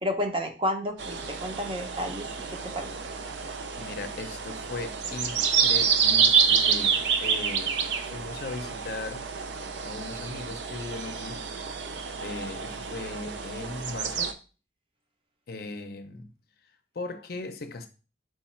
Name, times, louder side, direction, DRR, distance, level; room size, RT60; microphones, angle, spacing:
voice 1, 0.0-2.9, left 1 dB, 30° right, 0.6 m, -31 dB
sound 1, 1.0-14.3, right 6 dB, 80° right, 0.5 m, -28 dB
voice 2, 3.8-7.8 8.1-9.3 9.8-11.5 12.2-14.3 15.5-16.3 16.9-17.9, left 2 dB, 55° left, 0.5 m, -38 dB
4.7 x 2.4 x 4.3 m
head